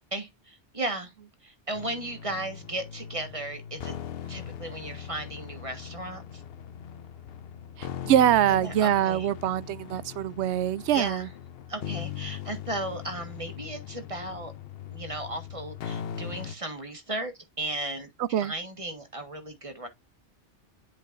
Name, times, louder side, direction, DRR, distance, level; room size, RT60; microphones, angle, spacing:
voice 1, 0.1-1.1 1.4-3.9 4.3-6.4 8.5-9.3 10.9-11.3 11.7-14.5 14.9-19.9, right 2 dB, 30° right, 1.6 m, -35 dB
sound 1, 1.7-16.5, left 9 dB, 65° left, 0.9 m, -40 dB
voice 2, 7.8-11.3 18.3-18.5, right 11 dB, 80° right, 0.9 m, -24 dB
11.0 x 5.2 x 2.6 m
omnidirectional pair, 1.1 m